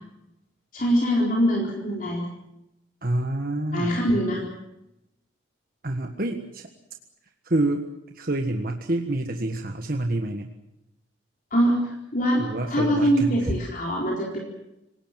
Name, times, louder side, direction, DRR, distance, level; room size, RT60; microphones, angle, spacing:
voice 1, 0.7-2.2 3.7-4.4 11.5-14.4, equal, 45° left, -2 dB, 4.3 m, -23 dB
voice 2, 3.0-4.0 5.8-6.7 7.4-7.9 8.1-10.5 12.4-13.4, right 1 dB, 50° right, 4 dB, 1.5 m, -27 dB
27.5 x 18.0 x 7.5 m, 0.89 s
head